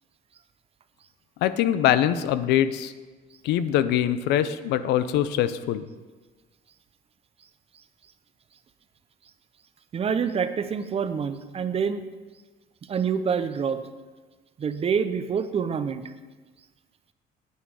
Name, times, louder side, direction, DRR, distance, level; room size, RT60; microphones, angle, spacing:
voice 1, 1.4-2.9 3.4-5.9, left 11 dB, 85° left, 13 dB, 0.5 m, -23 dB
voice 2, 9.9-12.1 12.9-13.8 14.6-16.0, right 6 dB, 35° right, 11 dB, 0.7 m, -26 dB
9.4 x 8.3 x 4.8 m, 1.3 s
cardioid pair, 110°, 17 cm